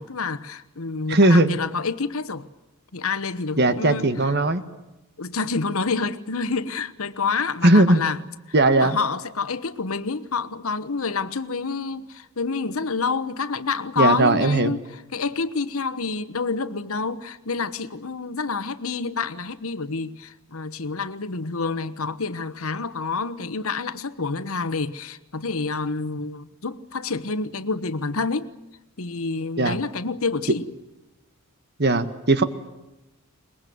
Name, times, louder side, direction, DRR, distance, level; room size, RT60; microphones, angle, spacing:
voice 1, 0.0-2.5 2.9-4.3 5.2-8.2 8.7-28.5 29.0-30.7, left 4 dB, 75° left, 14 dB, 1.2 m, -28 dB
voice 2, 1.1-1.6 3.6-4.6 7.6-8.0 8.5-9.0 14.0-14.7 29.6-29.8 31.8-32.4, right 2 dB, 50° right, 12 dB, 1.6 m, -18 dB
22.5 x 21.0 x 9.4 m, 0.98 s
head